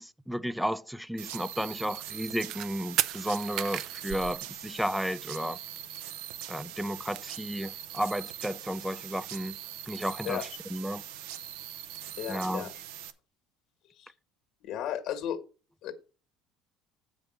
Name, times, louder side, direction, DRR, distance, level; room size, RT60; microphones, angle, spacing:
voice 1, 0.0-5.6 6.5-9.5 9.9-10.4 10.7-11.0 12.3-12.7, equal, ahead, 0.4 m, -33 dB
sound 1, 1.2-13.1, right 11 dB, 85° right, 0.8 m, -42 dB
sound 2, 2.5-2.7 3.0-5.1 5.4-5.5 5.7-5.8 6.0-6.6 6.8-8.1 8.4-9.9, right 12 dB, 60° right, 0.5 m, -34 dB
voice 2, 10.2-10.6 12.2-12.7 14.0-14.1 14.6-15.4 15.8-15.9, left 10 dB, 65° left, 1.5 m, -34 dB
8.0 x 5.2 x 6.3 m
supercardioid pair, 105°, 0 cm